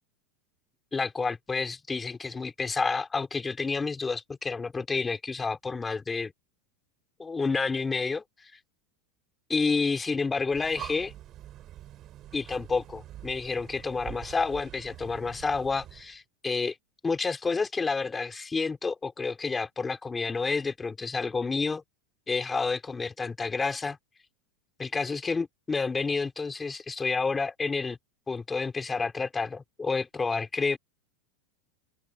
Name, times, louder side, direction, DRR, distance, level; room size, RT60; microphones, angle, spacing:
voice 1, 0.9-6.3 7.2-8.5 9.5-11.1 12.3-16.7 17.0-21.8 22.3-24.0 24.8-28.0 28.3-30.8, left 4 dB, 15° left, 4.5 m, -29 dB
Breathing, 10.4-16.2, right 13 dB, 40° right, 4.5 m, -45 dB
open air
supercardioid pair, 125°, 0 cm